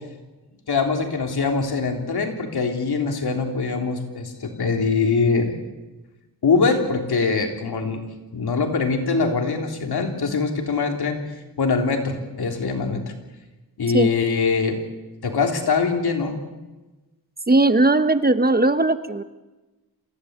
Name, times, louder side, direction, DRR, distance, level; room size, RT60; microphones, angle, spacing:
voice 1, 0.7-5.5 6.4-8.0 8.3-11.2 11.6-13.0 13.8-14.8 15.2-16.4, left 4 dB, 85° left, 3 dB, 3.5 m, -23 dB
voice 2, 17.5-19.2, right 2 dB, 25° right, 10 dB, 1.1 m, -18 dB
27.0 x 16.0 x 8.2 m, 1.1 s
wide cardioid pair, 100°, 37 cm